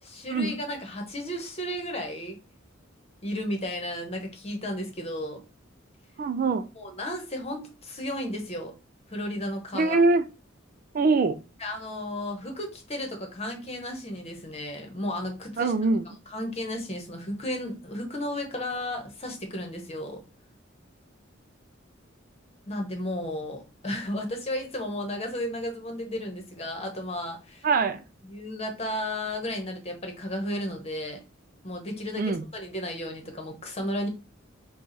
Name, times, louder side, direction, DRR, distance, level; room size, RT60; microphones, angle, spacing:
voice 1, 0.0-2.4 3.2-5.4 6.7-8.7 9.1-10.0 11.6-15.7 16.0-20.2 22.7-27.7 28.2-31.2 31.6-34.1, left 1 dB, 30° left, 1.1 m, -33 dB
voice 2, 6.2-6.6 9.7-10.2 10.9-11.4 15.6-16.0 27.6-28.0 32.2-32.4, right 3 dB, 45° right, 0.4 m, -23 dB
4.7 x 2.4 x 4.0 m
head